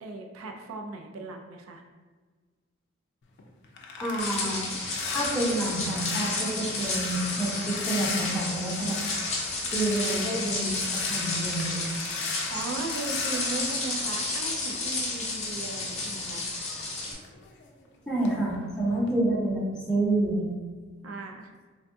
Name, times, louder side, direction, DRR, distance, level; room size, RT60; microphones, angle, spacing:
voice 1, 0.0-1.8 12.5-16.5 21.0-21.5, right 3 dB, 70° right, 2 dB, 0.3 m, -37 dB
sound 1, 3.2-14.9 15.2-17.9 18.2-18.5 18.9-19.1, left 4 dB, 55° left, 0.4 m, -38 dB
voice 2, 4.0-4.8 5.0-9.0 9.7-11.8 18.1-20.5, right 1 dB, 5° left, -6 dB, 0.7 m, -28 dB
sound 2, 4.2-17.1, left 3 dB, 35° left, 0.8 m, -32 dB
3.5 x 2.2 x 2.5 m, 1.5 s
head